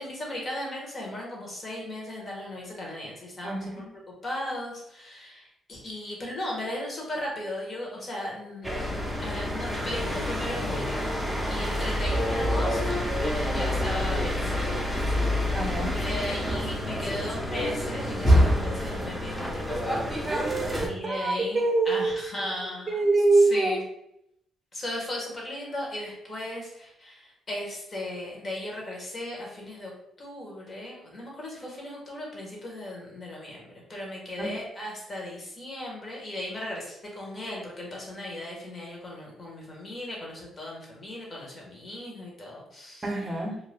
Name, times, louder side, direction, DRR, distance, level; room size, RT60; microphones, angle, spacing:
voice 1, 0.0-3.8 4.2-11.1 11.5-15.3 15.9-20.1 20.9-23.0 23.3-23.8 24.7-29.9 30.2-43.1, left 1 dB, 35° left, -2 dB, 1.2 m, -37 dB
voice 2, 3.4-3.9 15.5-16.0 20.3-22.1 22.9-23.8 34.4-34.5 43.0-43.6, right 3 dB, 30° right, 1 dB, 0.8 m, -25 dB
sound 1, 8.6-20.9, equal, 5° left, 0.7 m, -27 dB
2.7 x 2.2 x 3.4 m, 0.79 s
cardioid pair, 90°, 0 cm